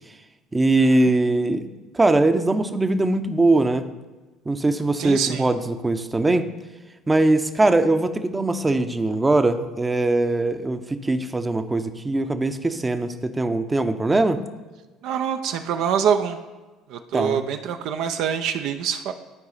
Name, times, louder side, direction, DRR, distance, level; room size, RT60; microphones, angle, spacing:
voice 1, 0.5-1.6 1.9-3.8 4.5-6.5 7.1-14.4 17.1-17.4, right 2 dB, 15° right, 9 dB, 0.7 m, -21 dB
voice 2, 5.0-5.5 15.0-16.4 16.9-19.1, right 8 dB, 60° right, 7 dB, 0.5 m, -25 dB
12.5 x 4.8 x 4.1 m, 1.2 s
hypercardioid pair, 65°, 0 cm